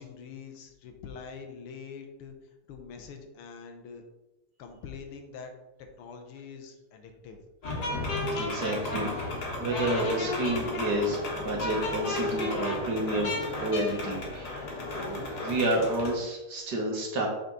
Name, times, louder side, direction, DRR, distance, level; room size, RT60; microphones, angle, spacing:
voice 1, 0.0-2.3 2.7-4.0 4.6-5.5 6.0-7.4 12.2-12.3, left 6 dB, 90° left, 5 dB, 1.8 m, -44 dB
sound 1, 7.6-16.2, left 2 dB, 50° left, 1.7 m, -33 dB
voice 2, 8.4-14.7 15.0-17.3, right 1 dB, 55° right, 0 dB, 1.7 m, -30 dB
7.1 x 4.2 x 3.9 m, 1.0 s
omnidirectional pair, 2.4 m